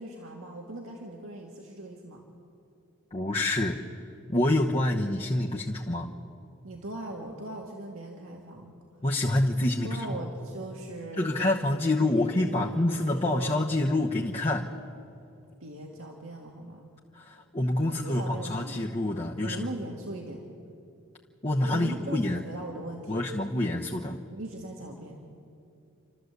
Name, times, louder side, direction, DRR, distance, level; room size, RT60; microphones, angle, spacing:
voice 1, 0.0-2.2 6.6-8.7 9.8-11.6 12.0-13.7 15.6-16.9 18.0-18.8 19.4-20.4 21.7-23.3 24.3-25.2, right 2 dB, 75° right, 0 dB, 2.0 m, -40 dB
voice 2, 3.1-3.8 4.3-6.1 9.0-10.2 11.2-14.7 17.1-19.7 21.4-22.4 23.1-24.2, left 1 dB, 30° left, -2 dB, 1.0 m, -27 dB
29.5 x 13.0 x 8.1 m, 2.6 s
head